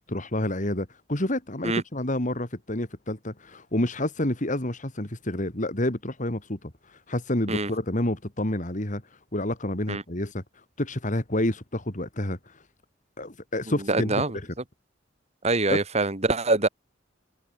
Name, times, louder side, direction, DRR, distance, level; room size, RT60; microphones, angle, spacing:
voice 1, 0.0-6.7 7.1-9.0 9.3-10.4 10.8-12.4 13.2-14.2 15.7-15.8, left 1 dB, 40° left, 3.1 m, -28 dB
voice 2, 13.9-14.4 15.4-16.7, right 3 dB, 35° right, 2.0 m, -24 dB
head